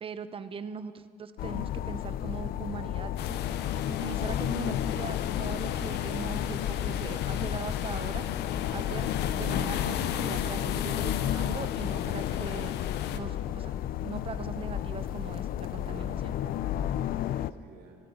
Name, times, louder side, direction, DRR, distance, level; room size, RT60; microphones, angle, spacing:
voice 1, 0.0-3.4 3.9-8.3 8.7-12.7 13.1-13.7 14.0-16.3, right 6 dB, 35° right, 12 dB, 0.7 m, -40 dB
sound 1, 1.4-17.5, left 11 dB, 60° left, 0.4 m, -32 dB
sound 2, 3.2-13.2, left 9 dB, 85° left, 0.8 m, -36 dB
voice 2, 15.8-18.0, right 4 dB, 70° right, 0 dB, 2.9 m, -53 dB
16.5 x 12.5 x 5.5 m, 2.1 s
cardioid pair, 110°, 17 cm